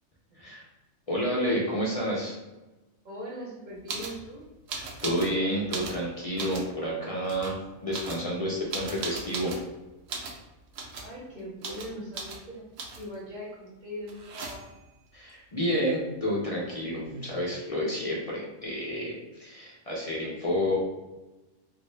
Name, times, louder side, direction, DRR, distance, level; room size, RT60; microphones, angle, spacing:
voice 1, 1.1-2.4 4.7-9.5 15.1-20.8, equal, 45° left, -4 dB, 0.4 m, -30 dB
voice 2, 3.0-4.4 10.9-14.8, equal, 40° right, -4 dB, 0.8 m, -41 dB
sound 1, 3.9-4.2 4.7-5.3 5.6-6.7 7.2-7.5 7.9-9.7 10.1-10.4 10.7-11.1 11.6-11.9 12.1-12.4 12.8-13.2 14.1-14.8 16.6-16.7 16.9-17.5, right 4 dB, 75° right, 0.9 m, -37 dB
3.0 x 2.6 x 3.2 m, 1.1 s
omnidirectional pair, 1.4 m